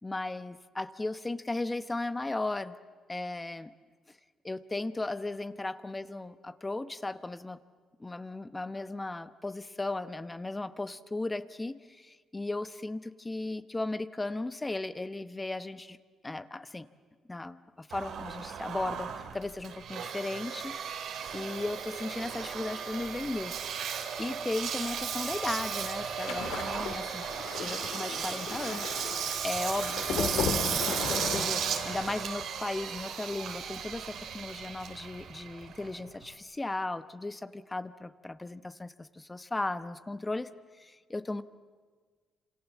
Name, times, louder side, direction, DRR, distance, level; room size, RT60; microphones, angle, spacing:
voice 1, 0.0-2.7 3.1-3.7 4.4-7.6 8.0-16.0 16.2-16.9 17.3-23.9 24.2-27.3 27.6-40.5 40.8-41.4, left 2 dB, 15° left, 12 dB, 1.1 m, -36 dB
Engine, 17.9-36.3, right 7 dB, 75° right, 2.8 m, -35 dB
sound 1, 25.3-32.1 32.4-32.7 32.9-33.1, left 7 dB, 85° left, 1.9 m, -37 dB
28.5 x 27.0 x 7.4 m, 1.5 s
cardioid pair, 90°, 0 cm